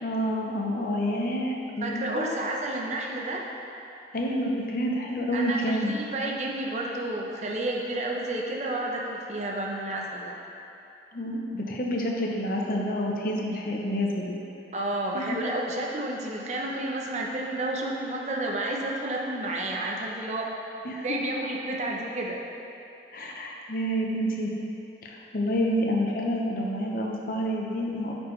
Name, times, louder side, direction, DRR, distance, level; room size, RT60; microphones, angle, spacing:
voice 1, 0.0-2.4 4.1-5.9 11.1-14.4 15.1-15.3 20.8-21.1 23.1-24.5 25.0-28.1, equal, 50° left, -1 dB, 0.7 m, -28 dB
voice 2, 1.8-3.4 5.3-10.4 14.7-20.5 21.0-22.4, right 1 dB, 40° right, -1 dB, 0.6 m, -31 dB
8.7 x 4.4 x 3.2 m, 2.8 s
head